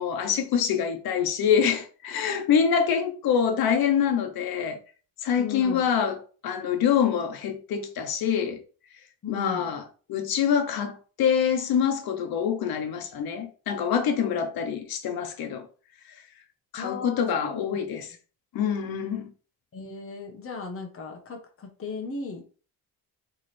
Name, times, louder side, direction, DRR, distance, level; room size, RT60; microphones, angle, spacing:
voice 1, 0.0-4.8 5.2-6.2 6.4-8.6 9.3-9.8 10.1-15.7 16.7-18.0 18.5-19.3, left 7 dB, 75° left, 0.9 m, -25 dB
voice 2, 5.4-5.9 9.2-9.8 16.8-17.6 19.7-22.4, left 4 dB, 40° left, 1.2 m, -36 dB
3.6 x 3.2 x 4.2 m
cardioid pair, 135°, 36 cm